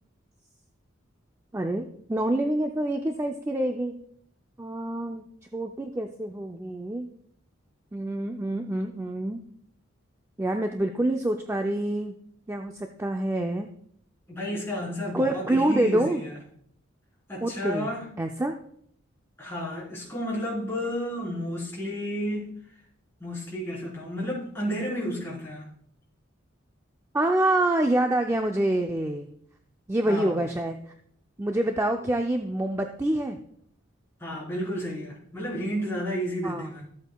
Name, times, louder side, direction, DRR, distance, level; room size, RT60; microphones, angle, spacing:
voice 1, 1.5-3.9 4.6-5.2 5.5-7.1 7.9-9.4 10.4-12.1 12.5-13.7 15.1-16.2 17.4-17.9 18.2-18.6 27.1-29.3 29.9-30.9 31.4-33.4 36.4-36.7, right 1 dB, 15° right, 4 dB, 0.4 m, -26 dB
voice 2, 14.3-16.3 17.3-18.1 19.4-22.6 23.2-25.7 30.1-30.4 34.2-36.9, equal, 10° left, -6 dB, 3.8 m, -32 dB
13.5 x 8.0 x 2.3 m, 0.67 s
head